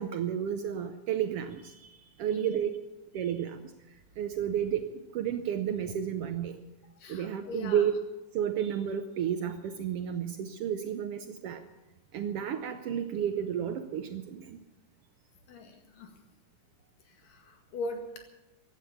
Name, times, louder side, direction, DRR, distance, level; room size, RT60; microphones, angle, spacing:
voice 1, 0.0-1.7 2.2-2.7 3.1-3.7 4.2-6.6 7.1-7.9 8.3-11.6 12.1-14.6, right 9 dB, 85° right, 8 dB, 1.3 m, -31 dB
voice 2, 7.0-7.8 15.5-16.1 17.2-18.2, left 2 dB, 85° left, 4 dB, 3.7 m, -40 dB
16.0 x 12.0 x 7.2 m, 1.0 s
omnidirectional pair, 3.7 m